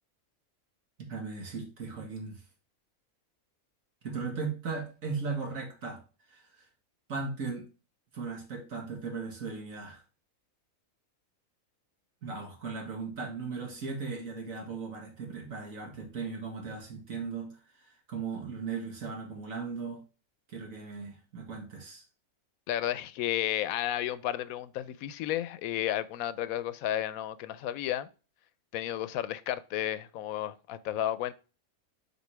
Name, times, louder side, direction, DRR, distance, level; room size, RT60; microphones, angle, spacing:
voice 1, 1.1-2.4 4.0-6.0 6.3-6.4 7.1-7.7 8.1-10.0 12.2-17.5 18.1-20.0 20.5-22.0, right 4 dB, 70° right, 2.0 m, -37 dB
voice 2, 22.7-28.1 28.7-31.3, left 12 dB, 85° left, 1.0 m, -32 dB
7.0 x 4.0 x 3.3 m
omnidirectional pair, 1.5 m